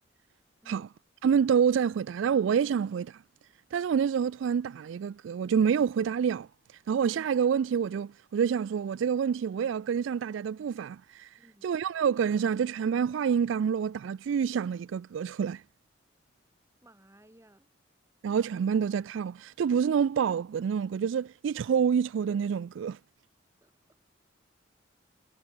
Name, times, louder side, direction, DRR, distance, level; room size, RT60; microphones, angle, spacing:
voice 1, 1.2-3.2 3.7-6.5 6.9-11.3 11.6-15.6 18.2-23.0, right 7 dB, 75° right, 0.3 m, -27 dB
voice 2, 16.8-17.7 23.6-23.7, right 1 dB, 15° right, 2.4 m, -58 dB
head